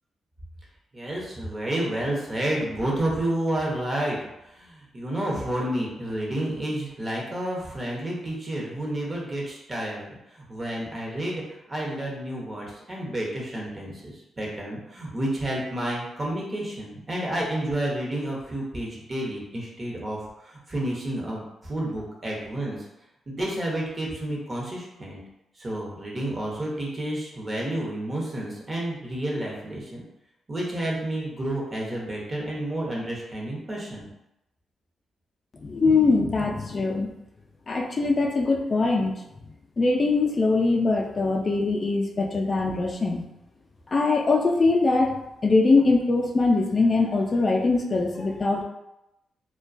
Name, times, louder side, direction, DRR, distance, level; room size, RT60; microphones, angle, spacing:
voice 1, 0.9-4.2 4.5-11.4 11.7-22.8 23.3-25.2 25.6-30.0 30.5-34.1, right 1 dB, 35° right, -3 dB, 0.8 m, -30 dB
voice 2, 35.6-37.1 37.7-39.1 39.8-43.3 43.9-48.6, left 3 dB, 40° left, 1 dB, 0.3 m, -22 dB
2.2 x 2.2 x 2.5 m, 0.90 s
cardioid pair, 65°, 0 cm